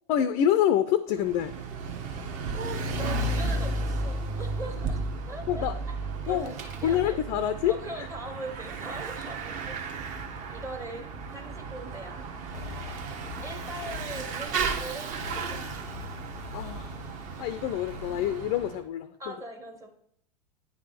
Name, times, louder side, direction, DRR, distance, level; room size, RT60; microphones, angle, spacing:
voice 1, 0.1-1.5 5.5-5.8 6.3-6.5 6.8-8.1 16.5-16.9 17.4-19.3, left 10 dB, 40° left, 12 dB, 0.4 m, -26 dB
Bicycle / Mechanisms, 1.2-18.8, right 3 dB, 40° right, 1.0 m, -34 dB
voice 2, 2.5-5.0 5.3-5.9 6.3-10.1 10.5-12.2 13.4-15.6 19.2-19.9, right 2 dB, 15° right, 3 dB, 0.9 m, -41 dB
sound 1, 12.5-18.4, left 7 dB, 90° left, 0.5 m, -44 dB
9.5 x 3.6 x 4.0 m, 0.71 s
figure-of-eight pair, 90°, 19 cm